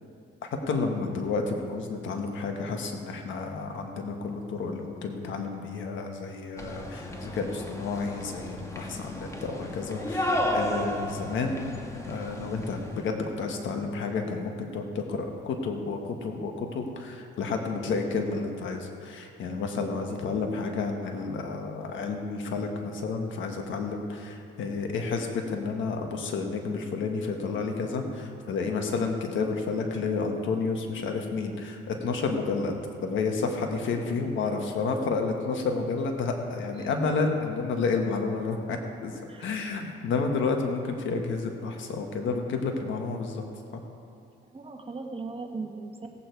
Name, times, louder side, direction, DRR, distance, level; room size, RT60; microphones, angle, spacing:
voice 1, 0.4-11.7 12.1-32.7 33.0-43.4 43.7-43.8, left 4 dB, 75° left, 4 dB, 1.5 m, -30 dB
sound 1, 6.6-13.1, left 1 dB, 15° left, 1.4 m, -33 dB
voice 2, 19.9-20.5 34.0-34.8 36.8-36.9 39.3-39.7 44.5-46.1, right 3 dB, 30° right, 3 dB, 1.4 m, -40 dB
17.0 x 8.4 x 4.6 m, 2.5 s
cardioid pair, 90°, 20 cm